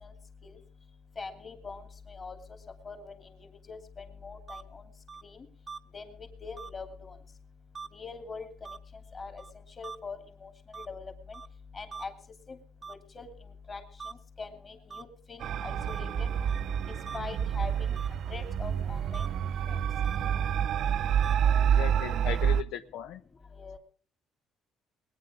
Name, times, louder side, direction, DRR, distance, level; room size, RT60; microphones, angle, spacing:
voice 1, 1.2-1.8 2.2-2.4 2.9-3.1 3.7-4.4 5.9-6.0 6.4-6.9 8.0-8.5 9.1-9.4 9.8-10.5 10.9-11.1 11.7-12.1 12.9-13.3 13.7-13.8 14.4-16.3 17.1-17.7 18.3-19.2 23.6-23.8, left 4 dB, 30° left, 5 dB, 2.7 m, -41 dB
sound 1, 4.5-4.6 5.1-5.2 5.7-5.8 6.6-6.7 7.8-7.9 8.7-8.8 9.4-9.5 9.8-10.0 10.7-10.9 11.3-11.5 11.9-12.0 12.8-12.9 14.0-14.1 14.9-15.0 15.9-16.0 16.5-16.6 17.1-17.2 18.0-18.1 19.1-19.3 20.0-20.2 20.8-20.9 21.2-21.4, right 5 dB, 25° right, 0.7 m, -42 dB
sound 2, 15.4-22.6, right 8 dB, 60° right, 0.6 m, -28 dB
voice 2, 21.6-23.2, left 11 dB, 80° left, 9 dB, 0.8 m, -37 dB
21.0 x 9.6 x 5.0 m, 0.43 s
cardioid pair, 135°, 0 cm